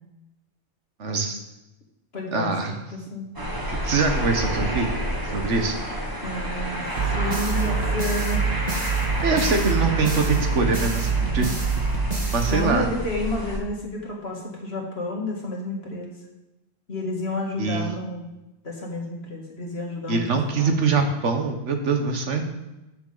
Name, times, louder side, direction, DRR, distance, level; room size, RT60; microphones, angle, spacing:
voice 1, 1.0-1.4 2.3-2.8 3.7-5.0 5.3-5.8 9.2-11.6 12.3-12.9 17.6-17.9 20.1-22.4, right 4 dB, 75° right, 4 dB, 1.5 m, -23 dB
voice 2, 2.1-2.5 2.9-3.3 6.2-8.5 11.2-11.5 12.5-16.1 16.9-18.3 18.6-20.7, left 2 dB, 60° left, -1 dB, 2.2 m, -30 dB
sound 1, 3.4-13.6, equal, 20° right, 1.5 m, -30 dB
sound 2, 7.0-13.1, right 4 dB, 35° right, 1.7 m, -25 dB
13.5 x 6.6 x 3.9 m, 0.98 s
omnidirectional pair, 1.2 m